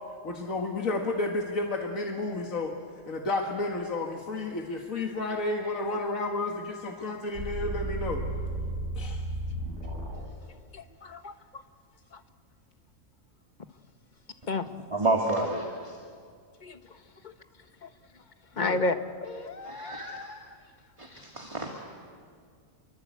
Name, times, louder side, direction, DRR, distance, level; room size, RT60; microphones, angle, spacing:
voice 1, 0.2-2.7 3.1-8.2 9.0-9.2 18.6-18.8, left 2 dB, 85° left, 1 dB, 2.2 m, -31 dB
sound 1, 7.3-10.3, right 1 dB, 65° right, 4.4 m, -33 dB
voice 2, 14.9-16.0 19.6-20.3 21.0-21.7, right 2 dB, 25° right, 0 dB, 2.3 m, -30 dB
voice 3, 18.6-18.9 19.3-20.3, left 2 dB, 35° left, 8 dB, 1.3 m, -29 dB
27.5 x 24.0 x 8.3 m, 2.1 s
omnidirectional pair, 1.4 m